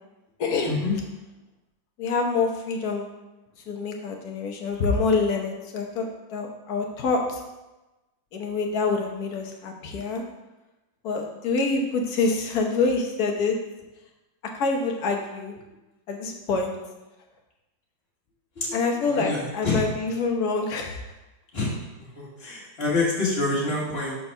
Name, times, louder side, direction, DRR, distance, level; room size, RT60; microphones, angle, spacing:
voice 1, 0.4-0.8 2.0-3.1 3.7-6.0 6.3-7.4 8.3-10.2 11.0-13.6 14.6-15.5 16.1-16.7 18.7-21.0, left 4 dB, 60° left, 2 dB, 1.3 m, -26 dB
voice 2, 19.1-19.9 21.5-21.8 22.2-24.2, left 3 dB, 35° left, -4 dB, 1.7 m, -26 dB
5.9 x 4.1 x 5.6 m, 1.1 s
omnidirectional pair, 2.1 m